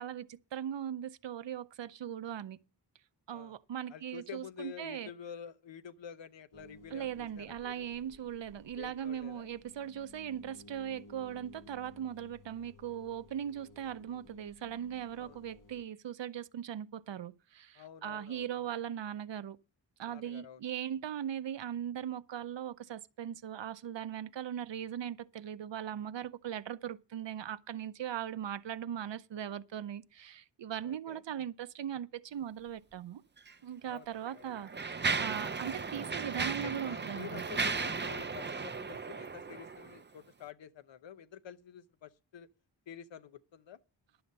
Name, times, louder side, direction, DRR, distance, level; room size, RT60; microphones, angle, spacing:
voice 1, 0.0-2.6 3.3-5.1 6.9-19.6 20.0-33.2 33.6-37.4, right 9 dB, 70° right, 0.7 m, -39 dB
voice 2, 3.9-7.9 8.7-9.5 15.2-15.4 17.8-18.7 20.1-20.6 30.8-31.2 33.8-34.5 36.6-42.5 42.9-43.8, left 8 dB, 75° left, 0.8 m, -49 dB
sound 1, 6.5-15.9, left 2 dB, 45° left, 0.9 m, -57 dB
Mechanisms, 33.4-33.5 34.3-40.0, right 4 dB, 25° right, 0.5 m, -36 dB
11.0 x 7.9 x 5.3 m
wide cardioid pair, 150°, 45 cm